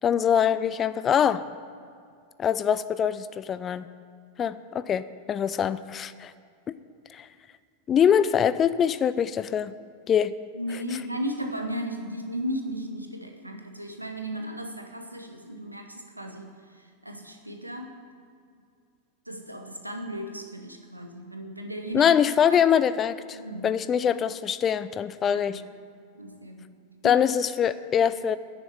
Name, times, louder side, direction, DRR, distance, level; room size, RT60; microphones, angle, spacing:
voice 1, 0.0-1.4 2.4-3.9 4.4-6.3 7.1-7.3 7.9-9.7 10.1-10.3 21.9-25.6 27.0-28.4, left 8 dB, 25° left, 16 dB, 0.4 m, -23 dB
voice 2, 10.5-18.0 19.3-22.1 22.5-22.6 23.3-23.7 25.3-25.6 26.1-26.8 27.0-27.2, equal, 85° right, 5 dB, 1.0 m, -35 dB
9.6 x 6.9 x 8.7 m, 2.4 s
figure-of-eight pair, 90°, 0 cm